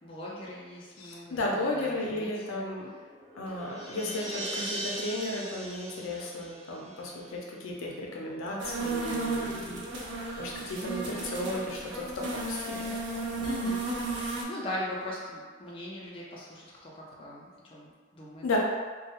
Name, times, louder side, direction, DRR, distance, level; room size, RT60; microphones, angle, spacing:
voice 1, 0.0-3.0 3.5-4.1 4.5-4.7 13.4-13.9 14.2-18.6, left 1 dB, 25° left, -5 dB, 0.3 m, -41 dB
voice 2, 1.0-2.9 3.4-13.0 18.4-18.6, left 2 dB, 85° left, -2 dB, 0.5 m, -34 dB
sound 1, 2.9-7.5, right 1 dB, 20° right, 0.7 m, -39 dB
sound 2, 8.6-14.4, right 2 dB, 60° right, 0.4 m, -34 dB
2.2 x 2.0 x 2.8 m, 1.5 s
head